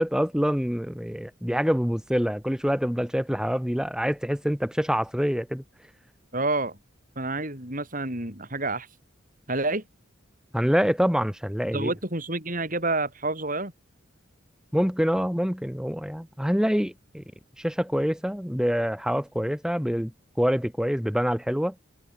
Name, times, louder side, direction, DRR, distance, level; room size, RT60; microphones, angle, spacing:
voice 1, 0.0-5.6 10.5-11.9 14.7-17.2 17.6-21.7, equal, 5° right, 1.8 m, -26 dB
voice 2, 6.3-6.8 7.2-8.9 9.5-9.8 11.7-13.7, right 2 dB, 40° right, 8.0 m, -28 dB
head